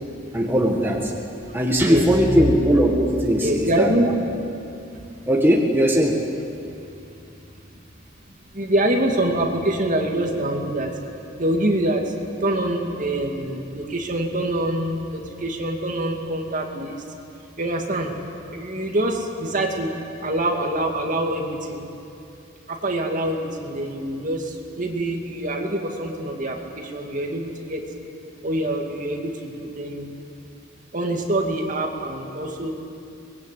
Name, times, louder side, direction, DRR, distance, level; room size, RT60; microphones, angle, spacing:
voice 1, 0.3-1.1 1.5-4.1 5.3-6.2, equal, 10° right, 0 dB, 1.8 m, -19 dB
voice 2, 1.8-2.4 3.4-4.1 8.5-10.9 11.4-12.0 12.4-17.0 17.6-18.1 18.5-19.9 20.2-21.9 22.7-24.4 24.8-27.8 28.4-30.1 30.9-32.7, right 1 dB, 40° right, 2 dB, 2.4 m, -25 dB
24.5 x 20.5 x 8.5 m, 2.7 s
head